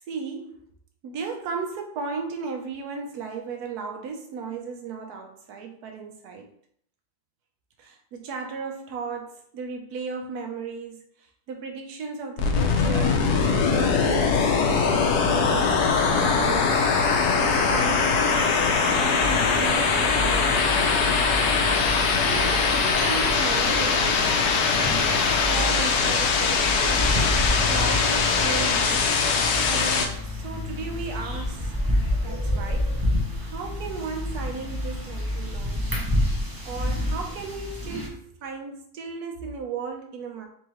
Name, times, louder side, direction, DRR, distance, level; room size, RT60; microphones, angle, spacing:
voice 1, 0.1-0.6 1.0-6.5 7.8-11.0 11.5-14.5 14.9-15.7 16.0-16.8 17.4-18.4 18.9-21.0 22.1-24.3 24.8-27.1 27.5-29.1 29.7-32.9 33.4-35.9 36.6-40.5, right 5 dB, 70° right, 4 dB, 1.2 m, -35 dB
sound 1, 12.4-30.1, left 5 dB, 75° left, 1.2 m, -22 dB
sound 2, 19.2-38.1, left 1 dB, 25° right, 0.4 m, -29 dB
4.0 x 3.6 x 3.0 m, 0.65 s
omnidirectional pair, 1.8 m